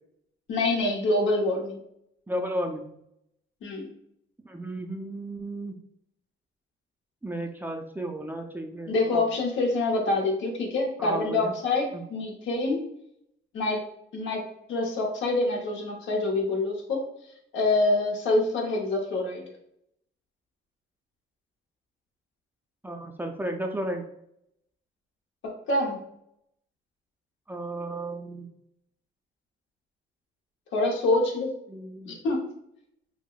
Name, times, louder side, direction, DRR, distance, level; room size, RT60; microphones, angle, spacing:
voice 1, 0.5-1.8 3.6-3.9 8.9-12.8 13.5-13.8 14.1-14.4 14.7-17.1 17.5-19.5 25.4-26.0 30.7-31.5 32.0-32.4, left 2 dB, 75° left, 1 dB, 0.8 m, -26 dB
voice 2, 2.3-2.9 4.4-5.7 7.2-9.3 11.0-11.5 11.9-12.0 22.8-24.0 27.5-28.5 31.7-32.1, right 1 dB, 10° right, 3 dB, 0.4 m, -34 dB
4.5 x 2.0 x 2.3 m, 0.75 s
cardioid pair, 90°, 20 cm